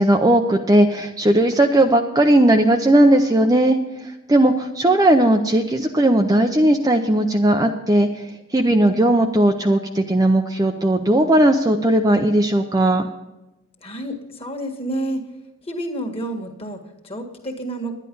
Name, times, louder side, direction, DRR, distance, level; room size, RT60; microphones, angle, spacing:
voice 1, 0.0-3.8 4.3-8.1 8.5-13.1, right 1 dB, 15° right, 4 dB, 0.5 m, -17 dB
voice 2, 13.8-15.2 15.6-18.0, right 1 dB, 25° left, 2 dB, 1.7 m, -29 dB
10.5 x 10.5 x 5.3 m, 0.98 s
head